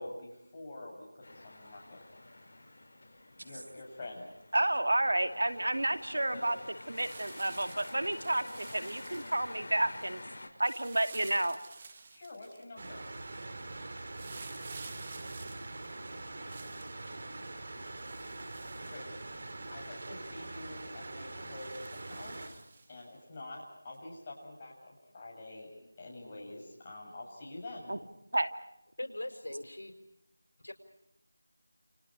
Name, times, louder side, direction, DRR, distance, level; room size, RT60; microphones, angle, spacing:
voice 1, 0.0-2.0 3.4-4.3 6.3-6.5 12.1-13.0 18.5-19.1 19.7-22.6 22.9-25.7 26.0-27.9, left 2 dB, 20° left, -3 dB, 7.7 m, -46 dB
sound 1, 1.2-10.5, left 2 dB, 50° left, 5.4 m, -49 dB
voice 2, 4.5-6.6 6.9-10.2 10.6-11.6 27.9-28.0 28.3-28.5, right 1 dB, 75° right, 9 dB, 2.6 m, -30 dB
sound 2, 6.9-9.6 10.6-12.6 14.1-16.9 17.8-19.5 19.9-20.0 20.4-20.6 21.5-23.1 23.9-24.0, right 4 dB, 25° right, 2.1 m, -51 dB
sound 3, 12.8-22.5, right 2 dB, 40° right, 4.2 m, -43 dB
voice 3, 29.0-29.9 30.6-30.7, left 1 dB, 90° left, 7 dB, 4.9 m, -40 dB
29.5 x 29.0 x 4.9 m, 0.85 s
figure-of-eight pair, 175°, 0 cm